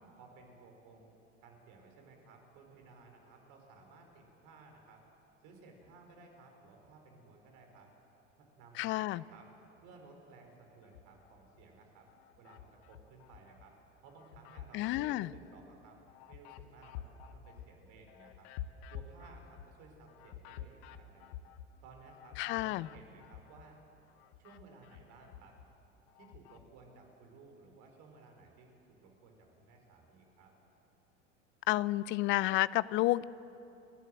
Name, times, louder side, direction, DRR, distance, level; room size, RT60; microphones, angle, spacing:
voice 1, 0.1-1.2 1.4-5.0 5.4-7.9 8.4-9.5 9.8-12.1 12.4-13.7 14.0-16.0 16.3-18.5 18.9-21.3 21.8-23.8 24.4-25.6 26.2-30.5, right 3 dB, 50° right, 3 dB, 4.7 m, -57 dB
voice 2, 8.8-9.2 14.7-15.3 22.4-22.9 31.7-33.2, left 18 dB, 35° left, 20 dB, 0.4 m, -30 dB
sound 1, 10.8-11.6 12.1-13.7 14.1-23.8 24.1-26.7, left 10 dB, 55° left, 1.1 m, -50 dB
29.5 x 11.5 x 7.9 m, 2.8 s
figure-of-eight pair, 85°, 37 cm